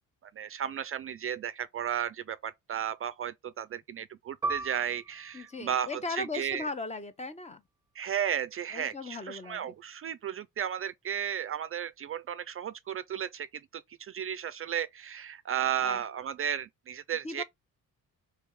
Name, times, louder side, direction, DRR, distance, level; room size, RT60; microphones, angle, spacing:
voice 1, 0.3-6.7 8.0-17.4, right 9 dB, 40° right, 0.4 m, -34 dB
Piano, 4.4-9.5 9.8-10.0 10.7-11.1, right 3 dB, 10° right, 0.9 m, -41 dB
voice 2, 5.3-7.6 8.7-9.7 15.6-16.0 17.2-17.4, left 3 dB, 20° left, 0.7 m, -38 dB
3.4 x 3.3 x 4.7 m
cardioid pair, 105°, 33 cm